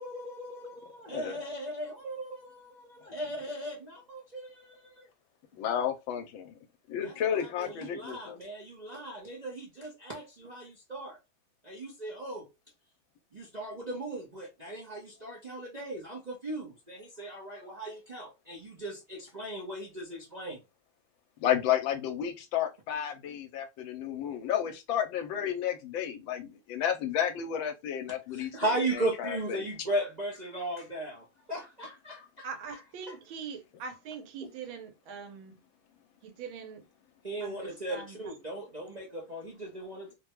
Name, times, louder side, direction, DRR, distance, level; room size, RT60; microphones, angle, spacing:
voice 1, 0.0-5.1 7.0-11.2 11.6-12.5 13.3-20.6 28.3-32.5 37.2-40.1, right 1 dB, 50° right, 0.4 m, -37 dB
voice 2, 5.5-6.6 6.9-8.4 21.4-29.6, left 9 dB, 80° left, 1.4 m, -32 dB
voice 3, 32.4-35.6 36.2-36.9 37.4-38.4, right 6 dB, 85° right, 1.6 m, -42 dB
3.5 x 2.2 x 3.0 m
omnidirectional pair, 2.2 m